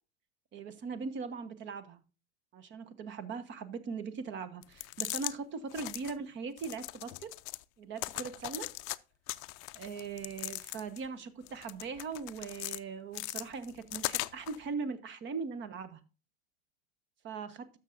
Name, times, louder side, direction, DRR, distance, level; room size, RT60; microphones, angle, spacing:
voice 1, 0.5-2.0 2.5-7.3 7.8-8.7 9.7-16.0 17.2-17.6, right 5 dB, 35° right, 12 dB, 1.2 m, -40 dB
sound 1, 4.6-5.3 5.7-6.1 6.6-7.6 8.0-9.0 9.3-11.1 11.5-12.8 13.1-14.6, left 21 dB, 45° left, 0.5 m, -39 dB
13.0 x 6.6 x 2.6 m, 0.32 s
hypercardioid pair, 95°, 33 cm